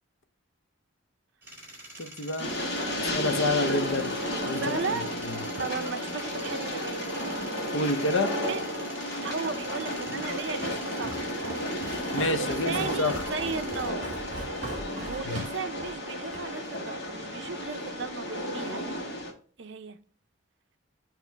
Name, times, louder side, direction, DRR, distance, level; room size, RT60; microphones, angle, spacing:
sound 1, 1.4-13.9, right 1 dB, 10° right, 2.2 m, -46 dB
voice 1, 2.0-2.5 3.1-4.1 4.5-4.8 7.7-8.3 12.1-13.2 15.3-15.4, left 2 dB, 70° left, 0.7 m, -28 dB
Train, 2.4-19.3, left 1 dB, 55° left, 1.5 m, -33 dB
voice 2, 2.5-3.5 4.6-5.1 5.6-7.4 8.5-8.6 9.2-11.5 12.4-14.2 15.0-19.0 19.6-20.0, right 4 dB, 60° right, 0.5 m, -36 dB
Walk footsteps, 10.1-16.5, right 1 dB, 40° right, 1.7 m, -41 dB
7.3 x 3.0 x 4.4 m
head